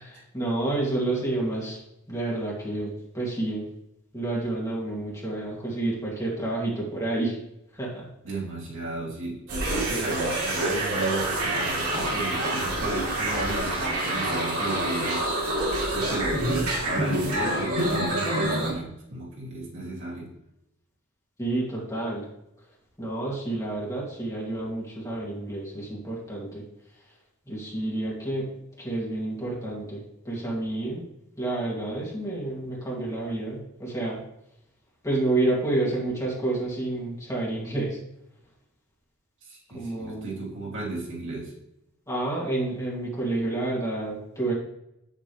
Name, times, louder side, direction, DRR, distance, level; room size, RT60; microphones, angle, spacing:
voice 1, 0.0-1.8 2.1-3.7 4.1-7.4 7.7-8.0 21.4-22.3 23.0-26.6 27.5-28.5 28.8-31.0 31.4-34.2 35.0-38.0 39.7-40.3 42.1-44.5, right 2 dB, 15° left, -5 dB, 2.5 m, -29 dB
voice 2, 8.2-15.2 15.9-20.3 39.5-41.5, right 2 dB, 60° right, -4 dB, 2.6 m, -34 dB
sound 1, 9.5-18.7, right 1 dB, 75° right, 3.0 m, -27 dB
8.6 x 7.4 x 3.3 m, 0.82 s
head